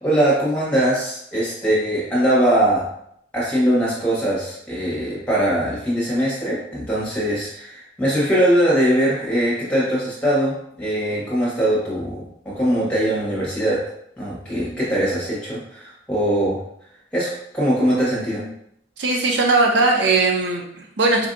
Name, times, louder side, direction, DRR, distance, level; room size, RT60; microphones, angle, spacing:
voice 1, 0.0-2.8 3.3-13.8 14.2-16.6 17.1-18.5, right 1 dB, 5° left, -7 dB, 1.2 m, -21 dB
voice 2, 19.0-21.3, right 3 dB, 70° right, 0 dB, 0.6 m, -19 dB
4.4 x 2.6 x 2.6 m, 0.73 s
head